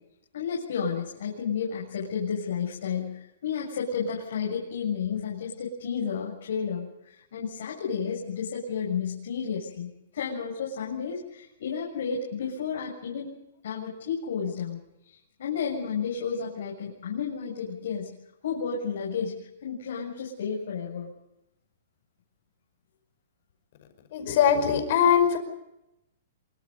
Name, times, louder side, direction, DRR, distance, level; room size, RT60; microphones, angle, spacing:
voice 1, 0.3-13.3 13.6-14.8 15.0-18.1 18.4-21.1, left 6 dB, 60° left, -3 dB, 7.1 m, -32 dB
voice 2, 24.1-25.4, left 8 dB, 40° left, 7 dB, 5.3 m, -21 dB
26.5 x 24.5 x 5.4 m, 0.88 s
hypercardioid pair, 175°, 0 cm